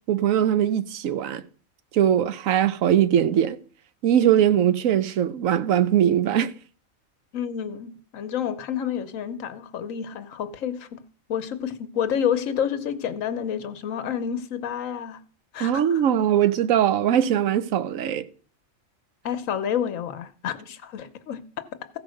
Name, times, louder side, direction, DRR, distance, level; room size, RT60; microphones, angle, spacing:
voice 1, 0.1-1.4 1.9-3.6 4.0-6.5 15.6-18.2, right 10 dB, 75° right, 1.1 m, -21 dB
voice 2, 7.3-11.0 11.3-15.2 15.5-16.0 19.2-21.6, left 8 dB, 70° left, 1.2 m, -29 dB
14.5 x 5.2 x 6.4 m
omnidirectional pair, 1.4 m